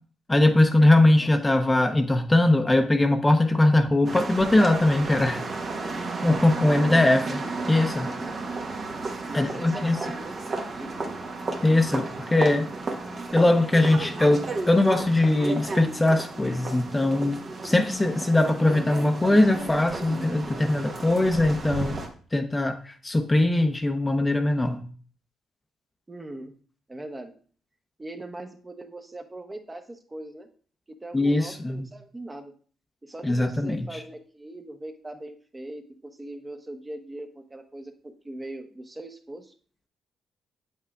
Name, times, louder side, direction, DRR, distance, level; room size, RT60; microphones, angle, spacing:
voice 1, 0.3-5.4 6.2-7.2 7.7-8.1 9.3-10.0 11.6-12.7 13.3-22.0 22.3-24.8 31.1-31.9 33.2-34.0, left 2 dB, 20° left, 6 dB, 0.6 m, -21 dB
sound 1, 4.0-22.1, right 3 dB, 50° right, 1.1 m, -33 dB
voice 2, 6.7-7.2 9.3-10.9 26.1-26.5 26.9-27.3 28.0-30.5 31.0-32.5 33.0-39.5, right 1 dB, 20° right, 5 dB, 0.9 m, -40 dB
7.4 x 5.6 x 2.3 m, 0.44 s
supercardioid pair, 55°, 0 cm